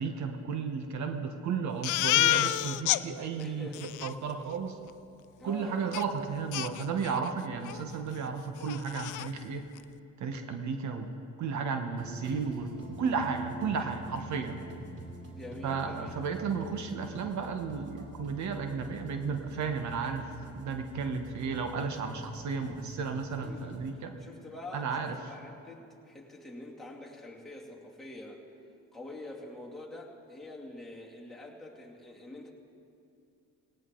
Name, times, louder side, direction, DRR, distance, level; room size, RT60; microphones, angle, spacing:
voice 1, 0.0-4.8 5.4-9.6 10.2-11.1 11.4-14.6 15.6-24.1 24.7-25.2, right 5 dB, 70° right, 6 dB, 1.2 m, -33 dB
Crying sobbing, 1.8-3.0 3.4-3.5 3.7-4.1 5.9-6.0 6.5-7.3 7.6-7.8 8.2-8.3 8.6-9.3, left 15 dB, 80° left, 0.5 m, -29 dB
voice 2, 3.4-3.9 5.4-5.8 15.3-16.2 23.4-23.8 24.2-28.4 28.9-32.5, left 2 dB, ahead, -4 dB, 2.6 m, -45 dB
sound 1, 12.0-23.9, right 1 dB, 55° right, 2.8 m, -46 dB
18.0 x 18.0 x 3.8 m, 2.5 s
cardioid pair, 90°, 30 cm